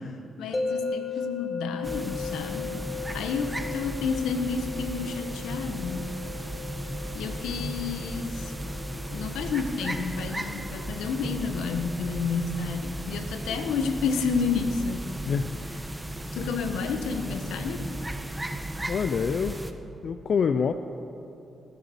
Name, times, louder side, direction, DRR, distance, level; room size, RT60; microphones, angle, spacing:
voice 1, 0.4-6.1 7.1-8.5 9.1-15.1 16.3-17.9, left 5 dB, 90° left, 7 dB, 1.2 m, -30 dB
sound 1, 0.5-13.6, left 5 dB, 35° left, 1.6 m, -38 dB
sound 2, 1.8-19.7, right 1 dB, 10° right, 1.2 m, -35 dB
voice 2, 15.3-15.6 18.9-19.6 20.0-20.7, left 6 dB, 60° left, 10 dB, 0.6 m, -26 dB
18.5 x 11.0 x 7.0 m, 2.9 s
supercardioid pair, 60°, 0 cm